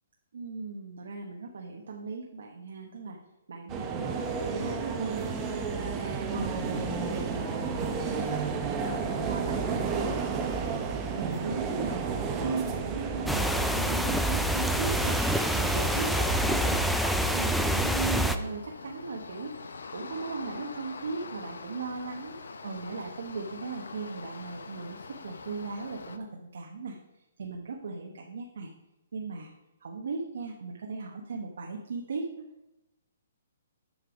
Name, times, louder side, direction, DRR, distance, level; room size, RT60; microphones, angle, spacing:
voice 1, 0.3-3.2 3.5-5.4 5.7-12.1 12.4-15.2 15.5-19.6 19.9-22.4 22.6-27.0 27.4-28.7 29.1-29.5 29.8-32.5, right 4 dB, 75° right, 1 dB, 0.9 m, -37 dB
sound 1, 3.7-16.7, right 5 dB, 20° right, 0.8 m, -32 dB
sound 2, 13.3-18.4, equal, ahead, 0.4 m, -27 dB
sound 3, 18.1-26.2, left 4 dB, 90° left, 0.8 m, -44 dB
7.9 x 5.4 x 5.1 m, 0.98 s
hypercardioid pair, 160°, 0 cm